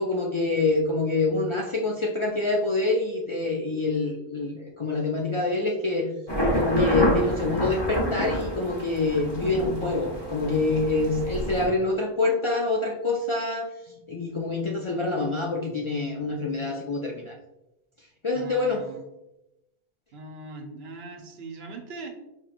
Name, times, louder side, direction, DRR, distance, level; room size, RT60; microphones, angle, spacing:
voice 1, 0.0-6.1 6.5-13.7 14.1-17.4 18.2-18.8, left 3 dB, 55° left, -1 dB, 0.3 m, -26 dB
sound 1, 6.3-11.7, equal, 25° left, 0.7 m, -28 dB
voice 2, 18.3-19.0 20.1-22.1, right 3 dB, 85° right, 3 dB, 0.9 m, -40 dB
5.2 x 2.9 x 2.4 m, 0.90 s
omnidirectional pair, 1.0 m